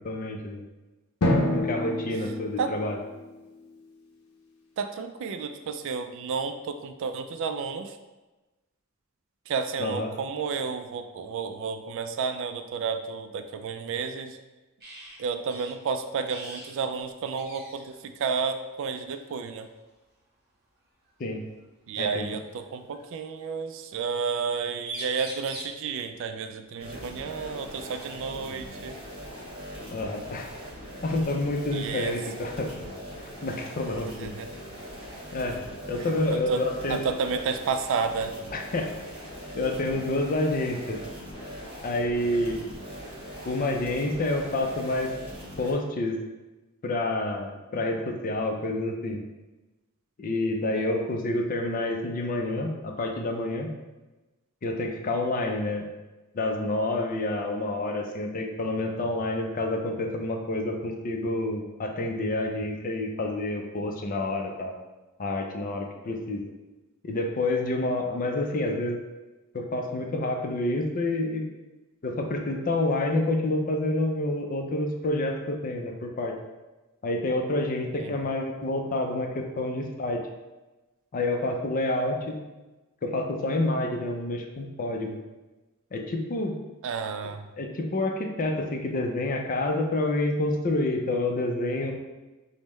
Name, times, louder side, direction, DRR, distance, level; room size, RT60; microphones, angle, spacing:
voice 1, 0.0-0.6 1.5-3.0 9.8-10.1 21.2-21.4 22.0-22.3 29.9-30.5 31.0-32.9 33.4-34.3 35.3-35.6 35.9-37.0 38.5-38.9 39.5-41.0 41.8-42.6 43.4-45.1 45.6-46.2 46.8-49.2 50.2-53.7 54.6-55.9 56.3-64.7 65.2-66.4 67.0-69.0 69.5-71.5 72.0-76.3 77.0-80.2 81.1-82.4 83.0-85.2 85.9-86.5 87.6-91.9, left 2 dB, 40° left, 3 dB, 0.5 m, -28 dB
Drum, 1.2-3.7, left 1 dB, 90° left, 0.6 m, -28 dB
voice 2, 4.8-8.0 9.5-14.4 15.2-19.7 21.9-29.0 31.7-32.2 34.2-34.5 36.0-38.4 50.7-50.9 78.0-78.1 86.8-87.5, right 5 dB, 65° right, 8 dB, 0.3 m, -31 dB
sound 1, 14.8-15.2 15.5-15.7 16.3-16.7 17.0-17.1 17.4-17.9 19.1-19.3 21.0-21.1 22.3-23.1 24.5-24.6 24.8-25.8 27.7-27.8 28.3-29.3, right 2 dB, 50° right, 0.9 m, -42 dB
sound 2, 26.8-45.7, equal, 25° right, 1.4 m, -41 dB
5.3 x 2.1 x 3.1 m, 1.1 s
head